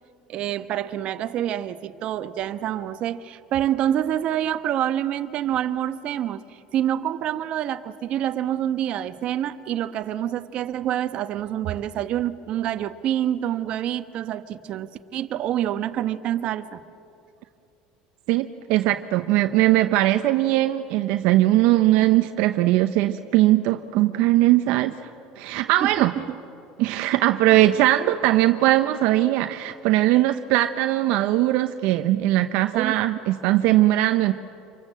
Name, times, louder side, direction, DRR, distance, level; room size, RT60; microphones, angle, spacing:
voice 1, 0.3-6.4 6.7-16.8 25.5-26.4 32.7-33.0, right 11 dB, 50° right, 10 dB, 1.1 m, -27 dB
voice 2, 18.3-25.1 25.4-26.1 26.8-34.3, right 15 dB, 70° right, 8 dB, 0.8 m, -20 dB
27.0 x 23.5 x 7.7 m, 2.6 s
supercardioid pair, 115°, 2 cm